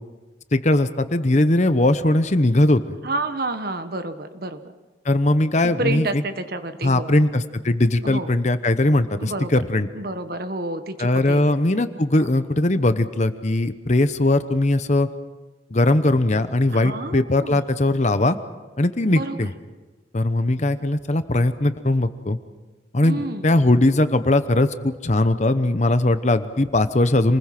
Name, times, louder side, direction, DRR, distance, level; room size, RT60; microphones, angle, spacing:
voice 1, 0.5-3.0 5.0-6.2 6.8-9.9 11.0-15.1 15.7-18.4 18.8-19.5 20.1-22.4 22.9-27.4, left 1 dB, 35° left, 11 dB, 0.9 m, -20 dB
voice 2, 3.0-4.7 5.6-7.3 8.0-8.4 9.2-9.6 9.9-12.3 16.7-17.7 19.1-19.5 23.0-23.5, right 2 dB, 50° right, 9 dB, 1.2 m, -30 dB
27.5 x 20.5 x 5.9 m, 1.3 s
head